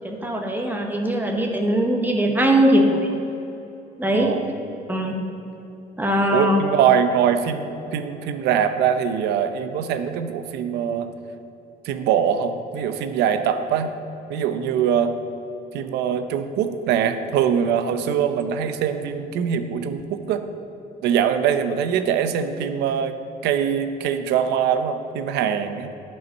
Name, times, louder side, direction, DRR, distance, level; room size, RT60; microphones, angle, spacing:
voice 1, 0.0-3.0 4.0-4.4 4.9-5.1 6.0-6.6, equal, 10° right, 2 dB, 1.0 m, -20 dB
voice 2, 4.1-4.5 6.3-11.1 11.8-13.9 14.3-15.2 15.7-20.4 21.0-23.2 23.4-25.9, right 8 dB, 85° right, 9 dB, 0.6 m, -23 dB
9.3 x 5.5 x 5.4 m, 2.9 s
cardioid pair, 110°, 17 cm